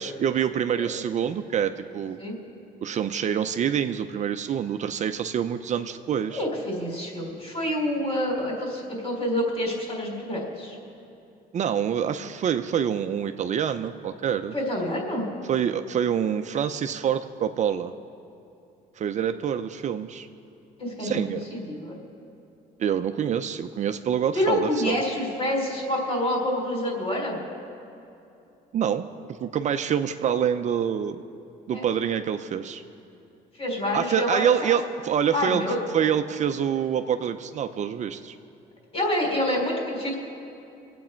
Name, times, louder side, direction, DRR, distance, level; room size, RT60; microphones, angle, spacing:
voice 1, 0.0-2.2 2.8-6.4 11.5-14.5 15.5-17.9 19.0-20.3 21.0-21.4 22.8-25.0 28.7-29.1 29.4-31.2 31.7-32.8 33.9-35.6 35.9-38.4, right 8 dB, 45° right, 8 dB, 0.6 m, -26 dB
voice 2, 6.3-10.8 14.5-15.3 20.8-22.0 24.3-27.4 31.7-31.9 33.6-34.7 35.3-35.8 38.9-40.2, left 1 dB, 35° left, 0 dB, 4.0 m, -27 dB
24.0 x 8.4 x 4.5 m, 2.7 s
cardioid pair, 110°, 17 cm